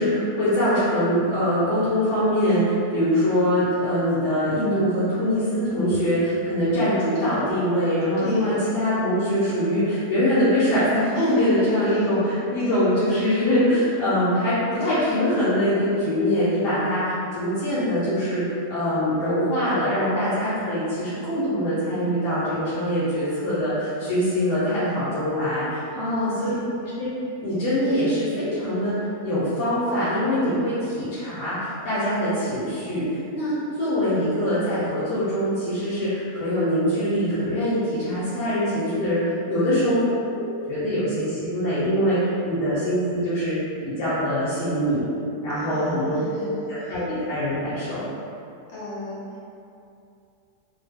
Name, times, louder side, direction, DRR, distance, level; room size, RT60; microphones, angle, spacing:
voice 1, 0.0-26.5 26.8-27.1 27.4-28.9 29.2-43.5 43.8-45.1 45.4-48.0, equal, 85° left, -12 dB, 1.4 m, -23 dB
voice 2, 8.2-8.5 11.1-12.1 12.6-12.8 25.9-26.6 39.5-39.8 45.5-47.1 48.7-49.3, left 2 dB, 65° left, -8 dB, 0.7 m, -38 dB
3.2 x 2.1 x 3.4 m, 2.6 s
omnidirectional pair, 1.7 m